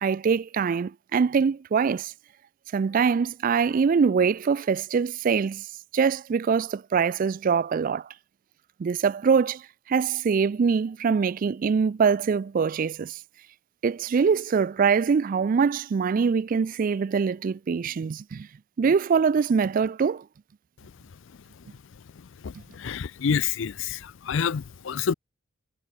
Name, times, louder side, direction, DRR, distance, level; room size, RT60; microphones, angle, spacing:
voice 1, 0.0-2.1 2.7-5.6 5.9-8.1 8.8-9.6 9.9-13.2 13.8-18.5 18.8-20.2, right 6 dB, 40° right, 0.3 m, -23 dB
voice 2, 22.4-25.1, left 6 dB, 60° left, 0.5 m, -28 dB
head